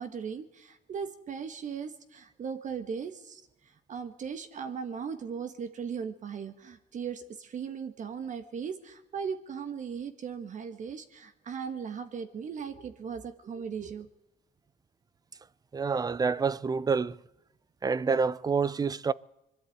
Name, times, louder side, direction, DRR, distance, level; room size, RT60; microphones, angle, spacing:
voice 1, 0.0-3.4 3.9-14.1, right 6 dB, 45° right, 1.6 m, -38 dB
voice 2, 15.7-17.2 17.8-19.1, right 5 dB, 20° right, 0.6 m, -27 dB
22.0 x 12.5 x 9.4 m
cardioid pair, 110°, 17 cm